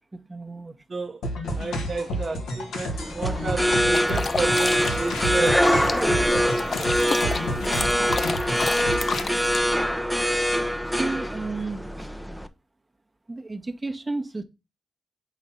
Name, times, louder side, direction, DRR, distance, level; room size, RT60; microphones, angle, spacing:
voice 1, 0.1-0.8 9.9-10.3 10.8-12.1 13.3-14.4, right 3 dB, 25° right, 1.1 m, -33 dB
voice 2, 0.9-1.2 1.5-7.7, right 4 dB, 45° right, 0.9 m, -32 dB
sound 1, 1.2-9.2, equal, 85° left, 1.6 m, -31 dB
sound 2, 2.9-12.5, equal, ahead, 0.8 m, -24 dB
sound 3, 3.9-9.6, left 4 dB, 45° left, 0.5 m, -31 dB
5.0 x 4.0 x 5.6 m
supercardioid pair, 55°, 0 cm